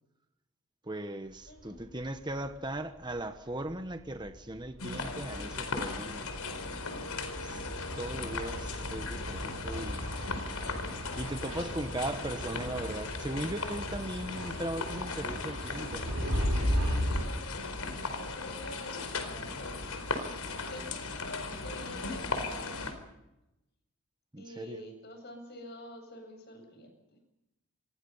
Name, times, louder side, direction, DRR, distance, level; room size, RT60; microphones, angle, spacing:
voice 1, 0.8-6.3 7.4-7.6 8.0-10.0 11.2-16.2 24.3-24.8, right 1 dB, 20° right, 1.3 m, -38 dB
sound 1, 1.4-2.8 3.1-3.2 3.5-17.3, equal, 85° right, 7.7 m, -37 dB
voice 2, 1.5-1.8 16.5-17.7 18.1-22.9 24.4-26.9, left 1 dB, 45° left, 7.9 m, -47 dB
sound 2, 4.8-22.9, left 3 dB, 90° left, 4.6 m, -37 dB
27.5 x 23.0 x 5.7 m
head